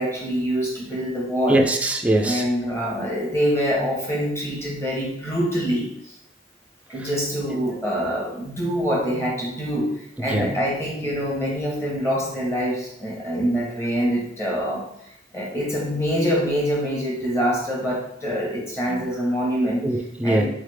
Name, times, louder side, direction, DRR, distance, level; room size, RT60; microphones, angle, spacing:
voice 1, 0.0-1.6 2.2-6.2 6.9-14.8 15.3-19.8 20.2-20.5, equal, 15° left, -4 dB, 1.0 m, -25 dB
voice 2, 1.5-2.5 7.0-7.1 10.3-10.5 18.9-19.0 19.8-20.5, right 1 dB, 10° right, 2 dB, 0.3 m, -22 dB
3.9 x 3.2 x 3.4 m, 0.74 s
head